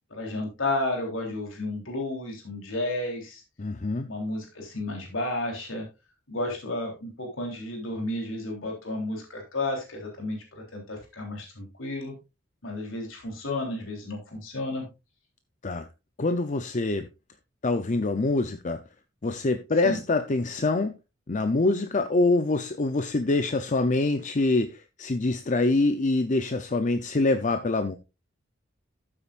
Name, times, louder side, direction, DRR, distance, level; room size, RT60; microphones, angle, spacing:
voice 1, 0.1-3.4 4.0-5.9 6.3-12.2 12.6-14.9 19.8-20.0, left 2 dB, 90° left, 3.6 m, -32 dB
voice 2, 3.6-4.1 15.6-15.9 16.2-17.1 17.6-18.8 19.2-20.9 21.3-28.0, left 2 dB, 40° left, 0.7 m, -25 dB
12.5 x 8.8 x 2.5 m
head